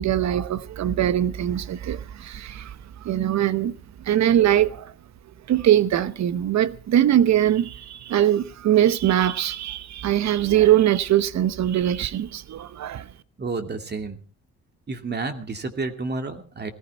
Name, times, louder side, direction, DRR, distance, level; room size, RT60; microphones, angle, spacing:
voice 1, 0.0-2.7 3.0-3.8 4.0-4.9 5.5-13.1, right 11 dB, 65° right, 1.0 m, -21 dB
voice 2, 13.4-14.2 14.9-16.7, right 3 dB, 35° right, 2.5 m, -30 dB
18.5 x 14.5 x 4.3 m
cardioid pair, 90°, 30 cm